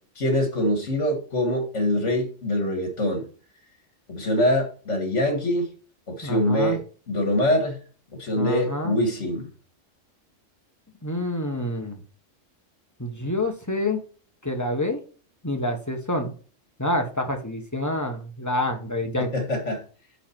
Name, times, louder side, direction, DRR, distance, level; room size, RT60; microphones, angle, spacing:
voice 1, 0.2-3.3 4.1-5.7 6.1-6.8 7.1-7.8 8.1-9.5 19.2-19.8, left 1 dB, 65° left, 2.3 m, -24 dB
voice 2, 6.2-6.8 8.4-9.0 11.0-12.0 13.0-14.0 14.4-15.0 15.4-16.3 16.8-19.3, left 1 dB, 15° left, 1.2 m, -27 dB
9.8 x 3.9 x 4.5 m
omnidirectional pair, 1.3 m